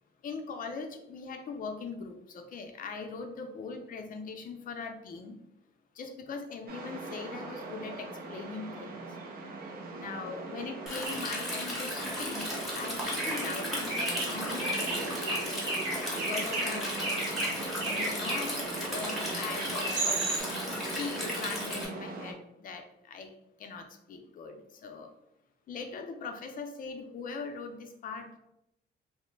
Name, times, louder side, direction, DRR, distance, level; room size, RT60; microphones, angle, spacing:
voice 1, 0.2-5.4 6.0-9.0 10.0-12.5 12.7-15.2 16.1-20.3 20.7-23.3 23.6-25.1 25.7-28.4, left 4 dB, 45° left, 5 dB, 0.4 m, -41 dB
sound 1, 6.7-22.3, right 3 dB, 50° right, 0.5 m, -40 dB
Stream, 10.9-21.9, left 1 dB, ahead, 0.7 m, -36 dB
sound 2, 11.0-11.3 12.4-12.5 13.0-13.6 13.9-18.6 19.5-20.4, right 2 dB, 70° right, 0.9 m, -34 dB
3.0 x 2.0 x 3.1 m, 0.81 s
cardioid pair, 165°, 19 cm